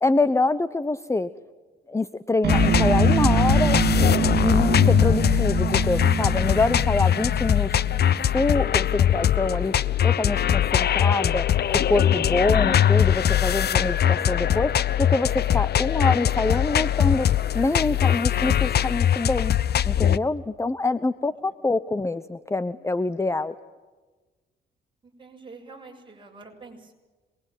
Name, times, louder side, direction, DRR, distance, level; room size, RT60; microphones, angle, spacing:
voice 1, 0.0-1.3 1.9-7.8 8.3-9.7 10.0-14.7 15.0-17.3 17.5-19.6 19.8-23.5, left 3 dB, 15° left, 14 dB, 0.9 m, -25 dB
sound 1, 2.4-8.5, right 7 dB, 55° right, 2.3 m, -25 dB
sound 2, 2.5-20.2, left 10 dB, 55° left, 0.8 m, -21 dB
voice 2, 7.7-8.0 25.2-26.9, right 3 dB, 25° right, 2 dB, 7.5 m, -46 dB
27.0 x 22.0 x 9.3 m, 1.3 s
cardioid pair, 90°, 20 cm